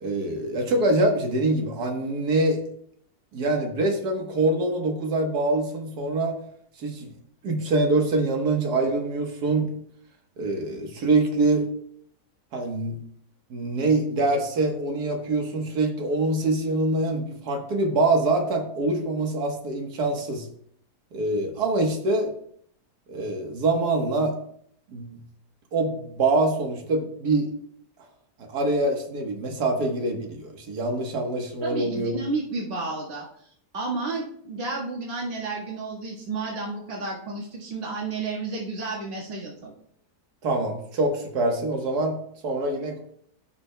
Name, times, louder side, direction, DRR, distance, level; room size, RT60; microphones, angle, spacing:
voice 1, 0.0-2.6 3.3-6.4 6.8-7.1 7.4-9.7 10.4-11.7 12.5-13.0 13.5-20.5 21.1-22.3 23.1-24.4 24.9-25.2 25.7-27.5 28.5-32.1 40.4-43.0, right 2 dB, 80° right, 2 dB, 1.8 m, -24 dB
voice 2, 31.6-33.5 33.7-39.7, right 3 dB, 40° right, -4 dB, 1.8 m, -31 dB
16.0 x 6.1 x 2.2 m, 0.65 s
omnidirectional pair, 1.7 m